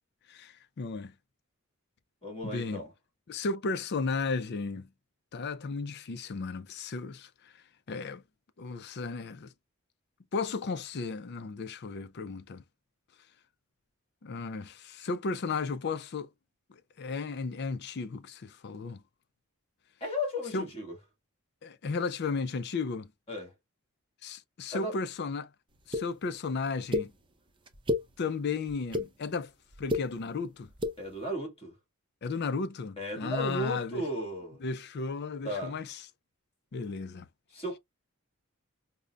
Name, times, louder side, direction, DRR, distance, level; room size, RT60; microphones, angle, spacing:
voice 1, 0.3-1.1 2.4-2.8 3.3-4.9 5.3-7.5 7.9-8.2 8.6-9.5 10.3-12.6 14.2-16.3 16.7-19.0 20.5-20.7 21.6-23.1 24.2-25.5 25.9-27.1 28.2-29.5 29.8-30.7 32.2-34.1 34.6-36.1 36.7-37.3, left 4 dB, 50° left, 0.4 m, -34 dB
voice 2, 2.2-2.9 20.0-20.9 23.3-23.5 24.7-24.9 31.0-31.7 33.0-34.6 35.4-35.8 37.5-37.8, equal, 25° left, 1.7 m, -35 dB
sound 1, 25.9-26.0 26.9-27.1 27.7-28.0 28.7-29.1 29.7-30.0 30.7-30.9, left 2 dB, 20° right, 0.5 m, -29 dB
5.2 x 2.1 x 2.3 m
head